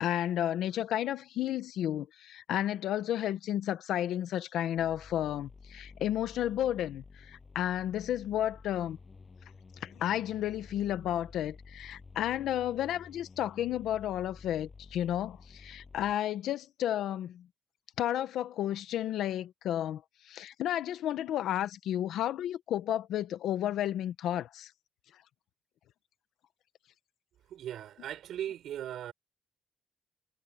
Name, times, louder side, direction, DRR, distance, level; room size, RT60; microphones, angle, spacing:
voice 1, 0.0-9.0 9.8-17.5 18.0-20.0 20.3-24.7, left 11 dB, 85° left, 1.1 m, -32 dB
sound 1, 4.8-16.1, left 4 dB, 20° left, 7.8 m, -52 dB
voice 2, 27.5-29.1, right 11 dB, 70° right, 5.7 m, -38 dB
cardioid pair, 170°, 0 cm